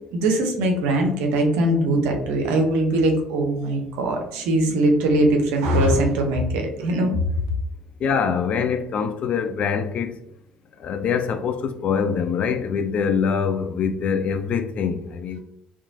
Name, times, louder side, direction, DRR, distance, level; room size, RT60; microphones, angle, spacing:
voice 1, 0.1-7.2, right 1 dB, 65° right, 0.5 m, -21 dB
voice 2, 8.0-10.2 10.8-15.4, left 6 dB, 45° left, 0.3 m, -24 dB
2.9 x 2.2 x 2.5 m
figure-of-eight pair, 50°, 3 cm